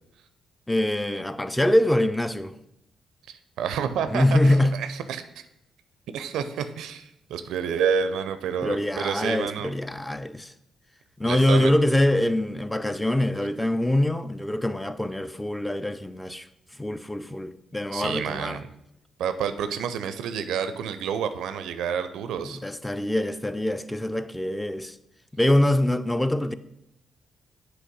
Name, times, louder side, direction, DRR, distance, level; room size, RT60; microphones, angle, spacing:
voice 1, 0.7-2.5 4.1-4.8 8.6-10.5 11.2-16.5 16.8-18.6 22.6-24.9 25.4-26.6, left 1 dB, 10° left, 0.4 m, -24 dB
voice 2, 3.3-5.2 6.1-9.7 11.2-11.7 17.9-18.7 19.2-22.6, right 7 dB, 75° right, 0.4 m, -29 dB
7.7 x 3.2 x 5.3 m
hypercardioid pair, 45°, 0 cm